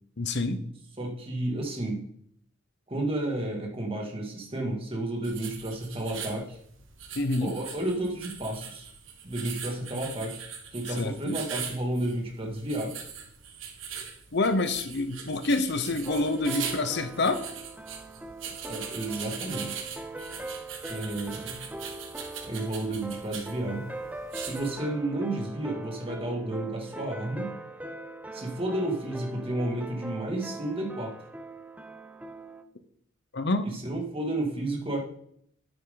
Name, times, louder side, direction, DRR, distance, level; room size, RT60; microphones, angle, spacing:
voice 1, 0.2-0.6 7.1-7.5 10.9-11.4 14.3-17.4 33.3-33.8, left 2 dB, 55° left, 10 dB, 0.8 m, -27 dB
voice 2, 1.0-2.0 2.9-6.6 7.4-8.9 9.2-10.4 10.7-12.9 18.6-19.8 20.9-21.6 22.4-23.8 24.4-27.5 28.3-31.1 33.6-35.0, right 1 dB, 25° right, 0 dB, 2.3 m, -32 dB
sound 1, 5.2-24.7, right 7 dB, 70° right, 1.8 m, -41 dB
sound 2, 16.1-32.6, right 2 dB, 10° right, 0.6 m, -41 dB
9.9 x 9.0 x 3.9 m, 0.66 s
head